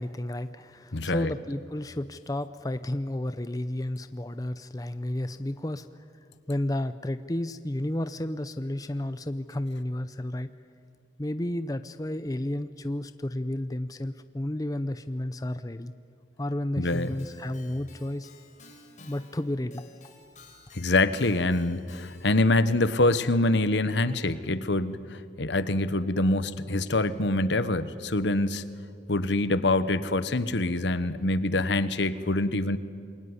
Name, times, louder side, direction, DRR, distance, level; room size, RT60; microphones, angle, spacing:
voice 1, 0.0-5.9 6.5-10.5 11.2-15.9 16.4-18.3 19.1-19.8, left 1 dB, 20° left, 11 dB, 0.6 m, -32 dB
voice 2, 0.9-1.3 16.8-17.1 20.7-28.6 29.1-32.8, left 2 dB, 75° left, 13 dB, 1.2 m, -25 dB
Keyboard (musical), 16.9-22.5, left 3 dB, 40° left, 4.1 m, -53 dB
27.5 x 22.0 x 9.8 m, 2.3 s
head